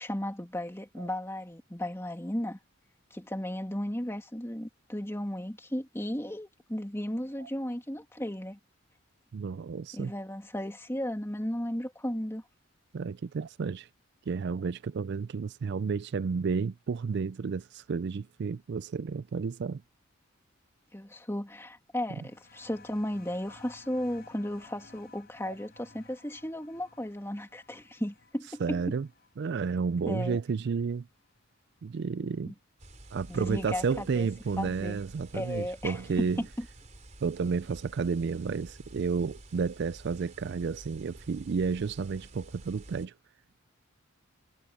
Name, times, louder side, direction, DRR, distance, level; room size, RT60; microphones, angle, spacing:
voice 1, 0.0-2.6 3.1-8.6 9.9-12.4 20.9-28.8 30.1-30.4 32.5-32.6 33.3-34.3 34.6-35.0 35.3-36.6, left 1 dB, 10° left, 2.7 m, -35 dB
voice 2, 9.3-10.1 12.9-13.9 14.3-19.8 25.5-25.6 28.6-29.1 29.4-31.1 31.8-32.5 33.1-36.4 37.2-43.1, right 5 dB, 55° right, 0.4 m, -31 dB
sound 1, 22.0-31.3 32.4-32.5, left 3 dB, 50° left, 4.6 m, -57 dB
sound 2, 32.8-43.1, right 1 dB, 35° right, 3.7 m, -50 dB
head